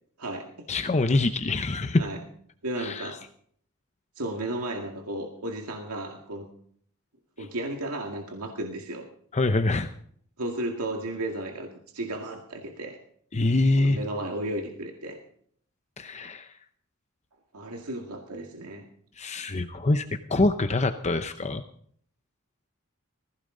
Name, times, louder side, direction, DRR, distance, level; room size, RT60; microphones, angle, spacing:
voice 1, 0.2-0.7 0.9-1.1 2.0-2.2 2.6-3.2 4.2-6.5 7.4-9.1 10.4-13.0 13.8-15.2 17.5-18.9, right 1 dB, 90° right, 2 dB, 2.0 m, -34 dB
voice 2, 0.7-2.1 2.8-3.1 9.3-9.9 13.3-14.0 16.0-16.5 19.2-21.6, left 2 dB, 30° left, 9 dB, 0.7 m, -25 dB
20.5 x 15.5 x 3.9 m, 0.62 s
head